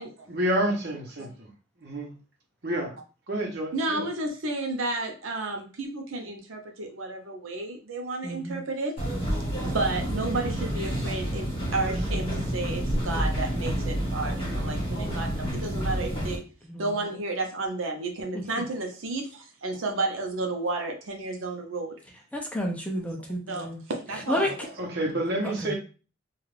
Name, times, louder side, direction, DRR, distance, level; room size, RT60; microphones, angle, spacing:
voice 1, 0.3-1.5 1.8-2.1 2.6-2.9 3.3-4.1 24.8-25.7, right 1 dB, 55° right, 0 dB, 0.9 m, -29 dB
voice 2, 3.7-8.9 9.6-16.4 16.8-21.9 23.0-23.1 23.5-24.6, right 2 dB, 80° right, 3 dB, 0.6 m, -32 dB
voice 3, 8.2-8.6 16.6-17.1 22.3-23.8 24.3-24.7 25.4-25.7, equal, 5° left, 1 dB, 0.4 m, -31 dB
sound 1, 9.0-16.4, equal, 30° left, 1.4 m, -29 dB
2.4 x 2.3 x 3.2 m, 0.35 s
head